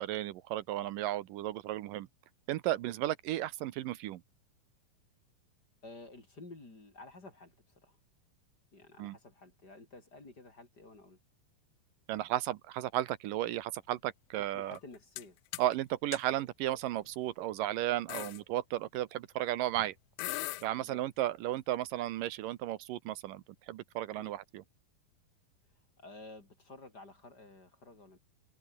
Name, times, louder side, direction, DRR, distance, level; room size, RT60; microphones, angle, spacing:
voice 1, 0.0-2.1 2.5-4.2 9.0-9.2 12.1-14.8 15.6-19.9 20.6-24.6, right 14 dB, 80° right, 2.5 m, -34 dB
voice 2, 5.8-8.0 8.7-11.2 14.4-15.4 18.1-18.3 20.7-21.0 24.2-24.4 25.7-28.2, left 2 dB, 30° left, 4.9 m, -52 dB
sound 1, 14.8-15.3 15.5-15.7 16.1-16.2 17.1-17.3 17.6-17.7 18.1-18.4 19.8-19.9 20.2-20.7, left 18 dB, 80° left, 1.8 m, -39 dB
omnidirectional pair, 4.0 m